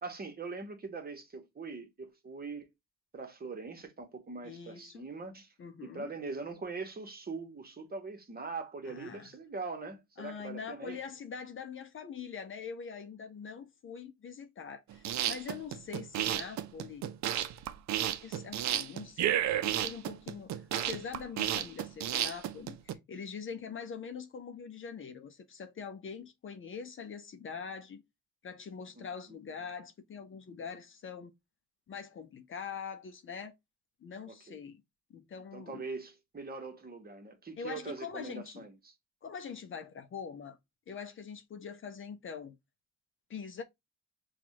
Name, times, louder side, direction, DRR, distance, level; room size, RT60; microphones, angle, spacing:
voice 1, 0.0-2.7 3.1-5.5 5.8-11.0 29.0-29.4 34.3-34.6 35.5-38.9, right 4 dB, 30° right, 1.2 m, -42 dB
voice 2, 4.4-5.1 5.6-6.1 8.9-9.3 10.2-17.1 18.2-28.0 28.4-31.3 31.9-33.5 34.0-34.8 35.1-35.9 37.6-38.7 39.2-40.6 40.9-42.6 43.3-43.6, left 6 dB, 45° left, 0.6 m, -43 dB
sound 1, 14.9-22.9, right 11 dB, 65° right, 0.6 m, -32 dB
5.9 x 2.4 x 2.8 m
cardioid pair, 90°, 30 cm